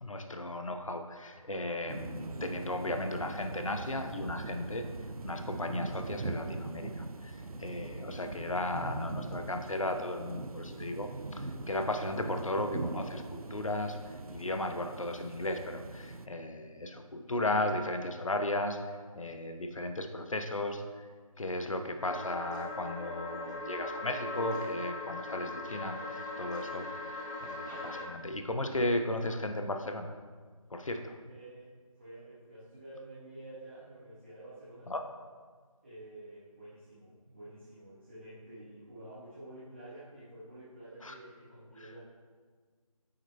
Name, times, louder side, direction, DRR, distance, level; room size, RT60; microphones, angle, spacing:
voice 1, 0.0-4.9 5.2-14.0 14.3-18.8 19.1-21.0 21.4-26.0 26.4-30.1 30.7-31.2 34.9-35.0 41.0-41.1, left 1 dB, 60° left, 6 dB, 0.8 m, -35 dB
sound 1, 1.9-16.3, right 3 dB, 75° right, 0.5 m, -41 dB
sound 2, 22.0-28.0, left 2 dB, 30° left, 1.5 m, -39 dB
voice 2, 31.3-31.7 32.0-34.9 35.8-42.0, right 1 dB, 20° right, -11 dB, 1.3 m, -49 dB
9.7 x 8.8 x 2.2 m, 1.5 s
figure-of-eight pair, 165°, 19 cm